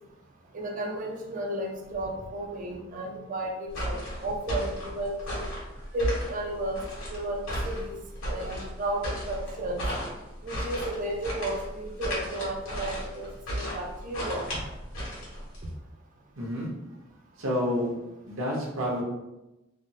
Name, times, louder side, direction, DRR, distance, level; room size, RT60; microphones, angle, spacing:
voice 1, 0.5-5.4 5.9-6.8 7.1-9.8 10.4-13.3 13.5-14.6, right 1 dB, 40° right, 1 dB, 0.4 m, -33 dB
sound 1, 3.7-15.7, equal, 65° left, 1.3 m, -34 dB
voice 2, 16.4-16.7 17.4-17.9 18.3-19.0, equal, 75° right, -4 dB, 0.9 m, -29 dB
3.3 x 2.0 x 2.7 m, 0.96 s
head